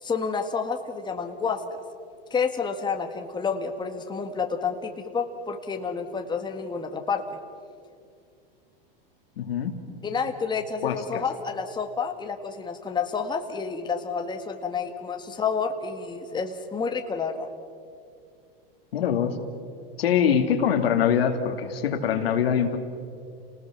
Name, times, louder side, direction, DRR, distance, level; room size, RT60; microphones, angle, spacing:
voice 1, 0.0-1.6 2.3-7.3 10.0-17.5, left 5 dB, 15° left, 5 dB, 1.7 m, -29 dB
voice 2, 9.4-9.7 10.8-11.2 18.9-19.4 20.0-22.8, left 8 dB, 80° left, 6 dB, 2.5 m, -23 dB
30.0 x 19.0 x 6.1 m, 2.4 s
hypercardioid pair, 120°, 30 cm